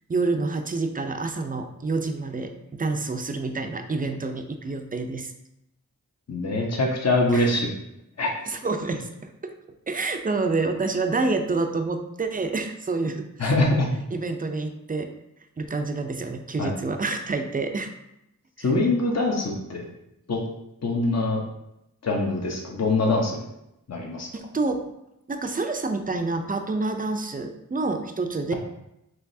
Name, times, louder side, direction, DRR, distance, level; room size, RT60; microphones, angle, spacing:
voice 1, 0.1-5.3 7.3-7.6 8.5-9.5 9.9-13.5 14.1-15.1 15.6-17.9 18.6-18.7 24.3-24.9 25.3-28.5, right 3 dB, 25° right, 6 dB, 0.5 m, -28 dB
voice 2, 6.3-7.6 8.2-8.3 13.4-13.9 16.6-16.7 18.6-19.9 20.3-20.4 20.8-21.4 22.0-23.4 23.9-24.3, left 2 dB, 50° left, 0 dB, 0.9 m, -23 dB
4.6 x 3.1 x 2.7 m, 0.84 s
cardioid pair, 50°, 34 cm